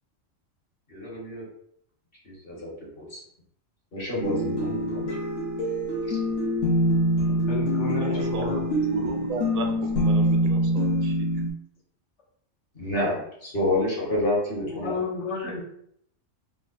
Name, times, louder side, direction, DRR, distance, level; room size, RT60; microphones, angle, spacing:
voice 1, 0.9-1.4 2.2-2.7 3.0-3.2 3.9-5.0 6.1-6.2 7.9-8.2 12.7-15.1, left 1 dB, 50° left, -6 dB, 1.6 m, -29 dB
sound 1, 4.2-11.5, equal, 90° left, 1.2 m, -25 dB
voice 2, 7.5-8.6 14.7-15.6, left 3 dB, 65° left, -3 dB, 1.3 m, -32 dB
voice 3, 8.0-8.6 8.9-11.3, right 4 dB, 65° right, 3 dB, 0.3 m, -35 dB
3.3 x 2.4 x 3.9 m, 0.70 s
omnidirectional pair, 1.3 m